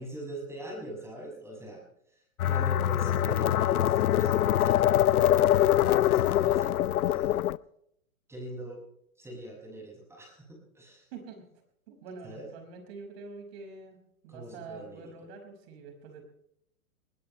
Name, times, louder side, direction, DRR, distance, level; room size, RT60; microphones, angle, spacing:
voice 1, 0.0-1.8 2.4-7.4 8.3-8.8 9.2-11.0 12.2-12.5 14.3-15.0, right 1 dB, 5° right, 0 dB, 6.3 m, -42 dB
sound 1, 2.4-7.6, left 12 dB, 85° left, 0.7 m, -24 dB
voice 2, 11.1-11.4 11.9-14.0 14.2-16.2, right 4 dB, 45° right, 4 dB, 5.5 m, -45 dB
20.5 x 19.0 x 3.2 m, 0.74 s
hypercardioid pair, 140°, 43 cm